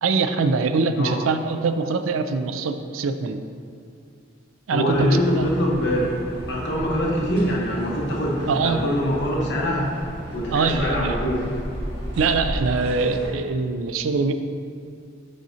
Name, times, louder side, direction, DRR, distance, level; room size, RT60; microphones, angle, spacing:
voice 1, 0.0-3.4 4.7-5.4 8.5-8.8 10.5-11.2 12.2-14.3, right 4 dB, 90° right, 9 dB, 0.4 m, -23 dB
voice 2, 4.7-9.9 10.3-11.4, equal, 60° left, -4 dB, 1.2 m, -23 dB
sound 1, 4.9-13.3, equal, 60° right, 1.4 m, -34 dB
6.4 x 6.1 x 2.8 m, 2.3 s
head